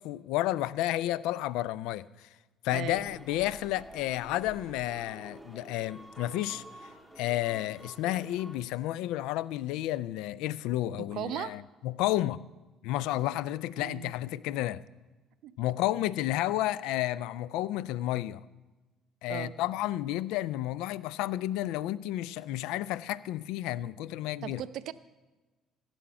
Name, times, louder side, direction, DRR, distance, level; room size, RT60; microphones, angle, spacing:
voice 1, 0.0-2.3 2.6-6.9 7.2-12.4 12.8-14.8 15.6-18.4 19.2-24.6, left 14 dB, 65° left, 0.3 m, -31 dB
voice 2, 2.7-3.1 11.1-11.5 13.8-14.1 15.4-15.5 19.3-19.5 24.4-24.9, right 11 dB, 60° right, 0.5 m, -37 dB
sound 1, 2.9-8.6, right 1 dB, 10° left, 2.3 m, -50 dB
15.5 x 7.8 x 5.9 m
hypercardioid pair, 55°, 0 cm